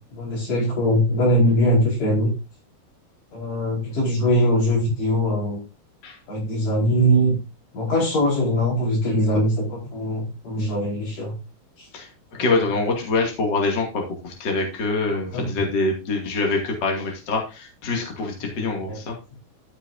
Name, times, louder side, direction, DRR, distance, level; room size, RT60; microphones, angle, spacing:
voice 1, 0.1-2.3 3.3-5.6 6.3-7.4 7.7-11.4 11.8-11.9 12.4-12.5 15.3-15.5 18.9-19.0, equal, 85° left, -3 dB, 6.5 m, -21 dB
voice 2, 12.4-19.1, left 3 dB, 35° left, 1 dB, 2.8 m, -25 dB
13.0 x 6.8 x 2.7 m, 0.29 s
omnidirectional pair, 3.6 m